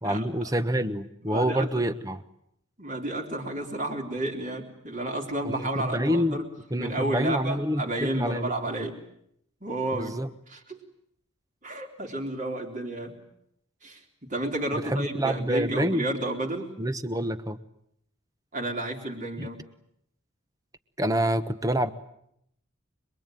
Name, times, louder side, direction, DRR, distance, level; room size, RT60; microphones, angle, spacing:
voice 1, 0.0-2.2 5.4-6.4 6.7-8.5 8.8-8.9 9.9-10.3 14.7-16.1 16.8-17.6 19.4-19.5 21.0-21.9, equal, 15° right, 11 dB, 1.1 m, -27 dB
voice 2, 1.2-1.9 2.8-6.5 6.8-9.0 9.6-10.1 10.5-10.8 11.6-13.2 13.8-16.7 18.5-19.6, right 1 dB, 35° right, 1 dB, 3.7 m, -31 dB
27.0 x 21.5 x 9.2 m, 0.75 s
head